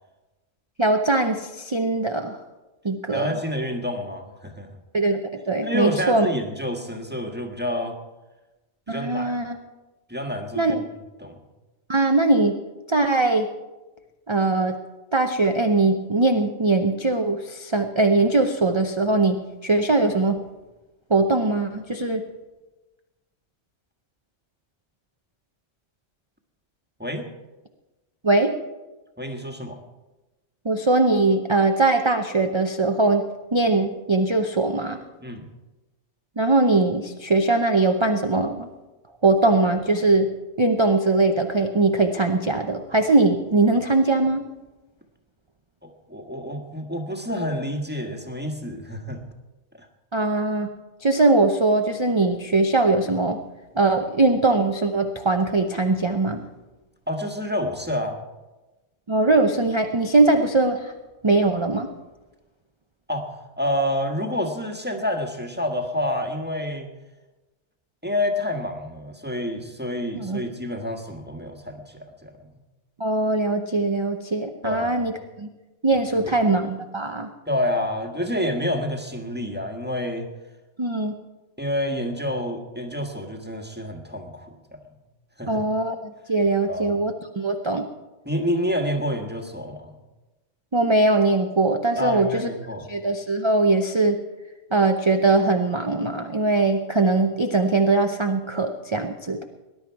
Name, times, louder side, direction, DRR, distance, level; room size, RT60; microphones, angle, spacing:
voice 1, 0.8-2.4 2.8-3.3 4.9-6.3 8.9-9.6 10.5-10.8 11.9-12.6 12.9-13.5 14.3-14.8 15.1-20.4 21.1-22.2 28.2-28.5 30.6-35.0 36.4-38.7 39.2-40.3 40.6-44.4 50.1-50.7 51.0-53.4 53.8-56.4 59.1-60.9 61.2-61.9 70.2-70.4 73.0-75.1 75.4-75.5 75.8-77.3 80.8-81.1 85.5-87.9 90.7-92.5 92.9-94.2 94.7-99.4, right 2 dB, 30° right, 5 dB, 0.6 m, -21 dB
voice 2, 3.1-4.7 5.6-8.0 8.9-9.3 10.1-10.7 11.2-11.4 27.0-27.2 29.2-29.8 35.2-35.5 45.8-49.2 49.8-49.9 57.1-58.2 63.1-66.9 68.0-72.5 74.6-75.0 76.1-76.4 77.5-80.3 81.6-84.8 85.4-85.6 86.7-87.0 88.2-89.9 92.0-92.9, left 1 dB, 10° right, 3 dB, 1.5 m, -28 dB
19.5 x 11.0 x 4.7 m, 1.1 s
omnidirectional pair, 1.3 m